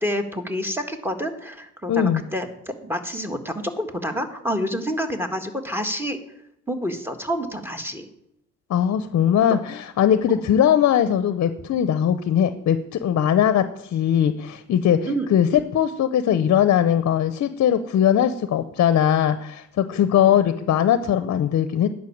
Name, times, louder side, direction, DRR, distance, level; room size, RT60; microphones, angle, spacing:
voice 1, 0.0-6.2 6.7-8.1 10.3-10.4 15.1-15.3 20.2-20.3, equal, 5° right, 6 dB, 1.6 m, -28 dB
voice 2, 1.9-2.2 8.7-21.9, left 9 dB, 60° left, 12 dB, 0.7 m, -20 dB
10.5 x 5.7 x 8.6 m, 0.79 s
cardioid pair, 90°, 30 cm